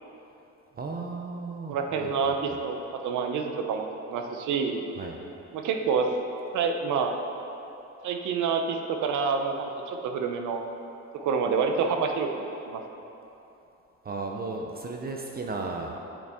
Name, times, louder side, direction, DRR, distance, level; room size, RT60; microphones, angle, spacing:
voice 1, 0.7-2.6 5.0-5.2 14.0-16.0, right 3 dB, 30° right, 1 dB, 0.5 m, -35 dB
voice 2, 1.7-4.8 5.5-6.1 6.5-7.1 8.0-10.6 11.1-12.3 12.7-12.8, right 5 dB, 75° right, 4 dB, 0.7 m, -27 dB
8.9 x 4.0 x 3.5 m, 2.9 s
cardioid pair, 90°, 30 cm